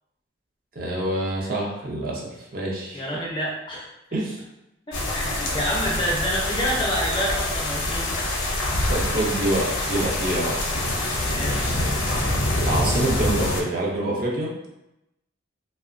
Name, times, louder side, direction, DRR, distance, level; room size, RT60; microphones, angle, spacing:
voice 1, 0.8-2.2 2.5-3.1 4.1-4.4 8.9-10.6 12.7-14.5, right 1 dB, 45° right, -3 dB, 0.5 m, -26 dB
voice 2, 2.9-4.2 4.9-8.1 11.3-11.6, equal, 25° left, -3 dB, 0.5 m, -28 dB
sound 1, 4.9-13.6, left 1 dB, 75° left, 0.5 m, -25 dB
2.9 x 2.1 x 2.4 m, 0.89 s
head